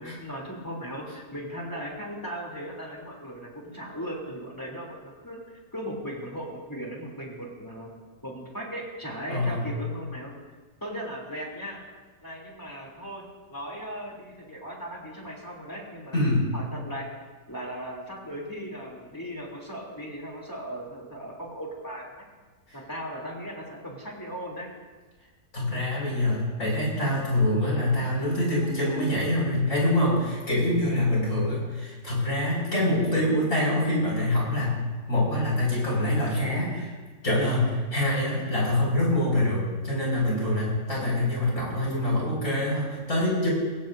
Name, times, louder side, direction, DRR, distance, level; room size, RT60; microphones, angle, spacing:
voice 1, 0.0-5.4 5.7-7.9 8.2-10.3 10.8-11.8 12.2-13.2 13.5-16.2 16.5-17.1 17.5-22.3 22.7-24.7, equal, 10° left, -2 dB, 3.2 m, -37 dB
voice 2, 9.3-9.7 16.1-16.5 25.5-34.8 35.1-36.9 37.2-43.5, left 1 dB, 50° left, -5 dB, 6.3 m, -25 dB
22.5 x 16.5 x 2.7 m, 1.4 s
omnidirectional pair, 1.8 m